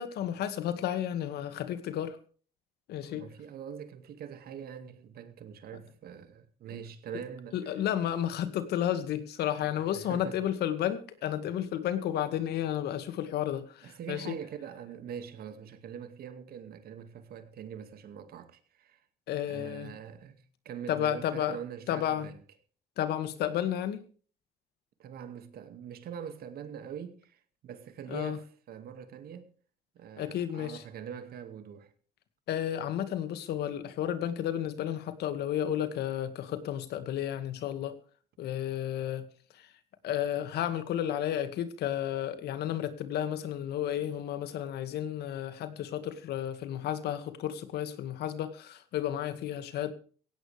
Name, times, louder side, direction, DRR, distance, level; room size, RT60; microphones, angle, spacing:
voice 1, 0.0-2.2 2.9-3.2 7.5-14.3 19.3-19.9 20.9-21.6 21.9-22.3 23.0-24.0 28.1-28.4 30.2-30.8 32.5-38.0 38.4-39.3 39.5-39.7 40.0-49.9, left 11 dB, 75° left, 2.1 m, -32 dB
voice 2, 3.0-7.7 9.7-10.4 13.8-19.0 19.5-22.4 25.0-29.5 29.9-31.9, right 8 dB, 65° right, 2.3 m, -43 dB
17.0 x 16.5 x 3.5 m
cardioid pair, 110°, 17 cm